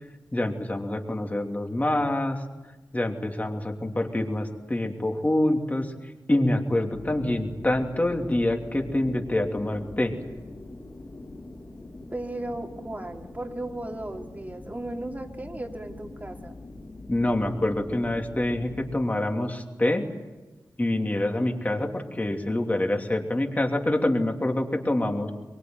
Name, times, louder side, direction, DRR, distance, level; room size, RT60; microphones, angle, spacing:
voice 1, 0.3-2.4 2.9-5.9 6.3-10.1 17.1-20.1 20.8-25.3, left 1 dB, 20° left, 3 dB, 3.0 m, -26 dB
sound 1, 6.9-19.1, left 2 dB, 40° left, 5.4 m, -43 dB
voice 2, 12.1-16.5, right 1 dB, 25° right, 2 dB, 2.9 m, -35 dB
23.5 x 23.0 x 9.5 m, 1.2 s
wide cardioid pair, 90°, 7 cm